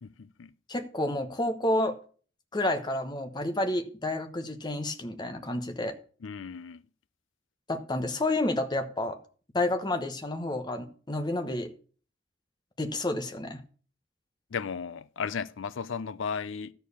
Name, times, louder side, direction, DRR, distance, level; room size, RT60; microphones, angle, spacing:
voice 1, 0.0-0.5 6.2-6.8 14.5-16.7, left 6 dB, 75° left, 0.5 m, -35 dB
voice 2, 0.7-2.0 2.5-6.0 7.7-9.2 9.5-11.7 12.8-13.6, left 1 dB, 20° left, 1.0 m, -30 dB
13.0 x 4.6 x 6.9 m
head